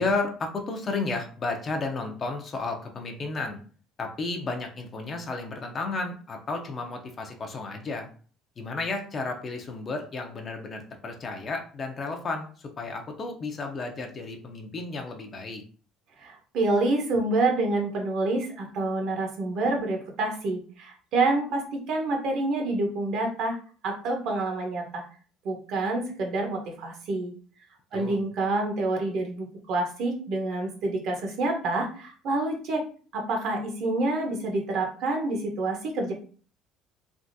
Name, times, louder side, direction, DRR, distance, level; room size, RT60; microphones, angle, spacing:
voice 1, 0.0-3.6 4.0-8.1 8.6-15.6 27.9-28.2, left 3 dB, 30° left, 3 dB, 0.5 m, -32 dB
voice 2, 16.2-23.6 23.8-25.0 25.4-27.3 27.9-32.8 33.1-36.1, right 2 dB, 55° right, 2 dB, 0.8 m, -27 dB
3.4 x 2.4 x 2.6 m, 0.41 s
cardioid pair, 150°, 0 cm